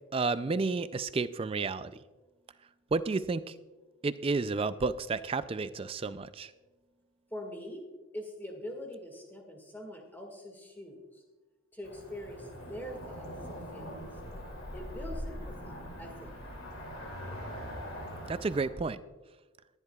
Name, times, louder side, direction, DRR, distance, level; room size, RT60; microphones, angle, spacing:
voice 1, 0.1-2.0 2.9-3.5 4.0-6.5 18.3-19.0, right 4 dB, 25° right, 14 dB, 0.3 m, -31 dB
voice 2, 7.3-7.9 8.1-11.2 11.7-14.0 14.7-16.3, left 1 dB, 10° left, 2 dB, 1.9 m, -43 dB
Cricket / Motor vehicle (road), 11.8-18.7, equal, 85° left, 2.7 m, -42 dB
20.0 x 10.5 x 2.3 m, 1.2 s
head